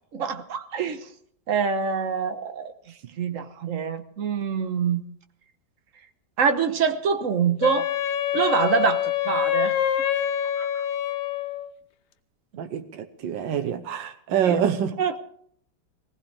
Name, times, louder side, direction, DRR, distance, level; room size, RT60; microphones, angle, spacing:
voice 1, 0.1-1.1 1.5-2.7 3.2-5.0 6.4-7.9 8.3-9.8 10.6-10.9 12.5-12.6 14.4-14.6 15.0-15.2, right 6 dB, 50° right, 1.3 m, -25 dB
Wind instrument woodwind instrument, 7.6-11.7, left 10 dB, 60° left, 1.2 m, -25 dB
voice 2, 12.6-15.0, right 8 dB, 90° right, 1.6 m, -26 dB
20.0 x 18.0 x 3.4 m
omnidirectional pair, 2.0 m